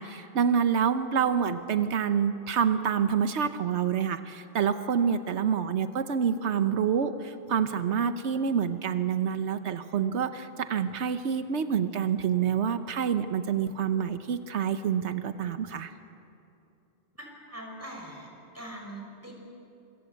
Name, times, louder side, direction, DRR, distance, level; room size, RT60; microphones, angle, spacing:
voice 1, 0.0-15.9, right 7 dB, 90° right, 10 dB, 1.2 m, -27 dB
voice 2, 17.2-18.3 18.5-19.3, right 1 dB, 15° right, 0 dB, 5.8 m, -42 dB
26.0 x 23.0 x 8.2 m, 2.7 s
omnidirectional pair, 1.1 m